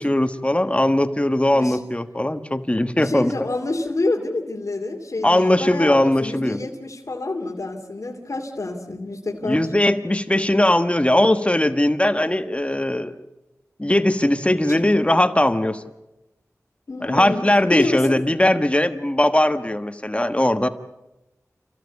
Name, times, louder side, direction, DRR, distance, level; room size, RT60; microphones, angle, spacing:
voice 1, 0.0-3.3 5.2-6.6 9.4-13.2 13.8-15.8 17.0-20.7, left 1 dB, 20° left, 9 dB, 1.3 m, -19 dB
voice 2, 3.0-9.7 14.7-14.8 16.9-17.4 17.7-18.2, left 2 dB, 65° left, 0 dB, 2.7 m, -28 dB
29.0 x 15.0 x 8.3 m, 0.96 s
wide cardioid pair, 60°, 6 cm